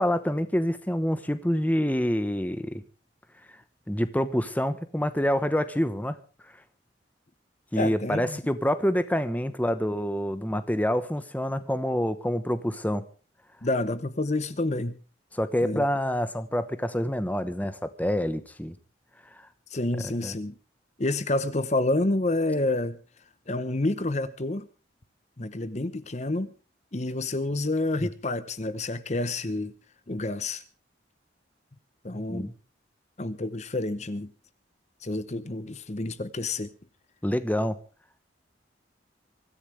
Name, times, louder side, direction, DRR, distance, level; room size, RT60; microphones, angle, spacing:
voice 1, 0.0-2.8 3.9-6.2 7.7-13.0 15.3-18.7 19.3-19.4 20.1-20.3 28.0-28.1 32.1-32.5 37.2-37.8, equal, 10° left, 1.0 m, -27 dB
voice 2, 7.7-8.4 13.6-14.9 15.6-15.8 19.7-20.6 21.0-23.0 23.5-24.6 25.4-26.5 26.9-29.7 30.1-30.6 32.0-32.5 33.2-34.3 35.0-36.7, left 2 dB, 35° left, 0.9 m, -28 dB
24.0 x 14.0 x 3.3 m
head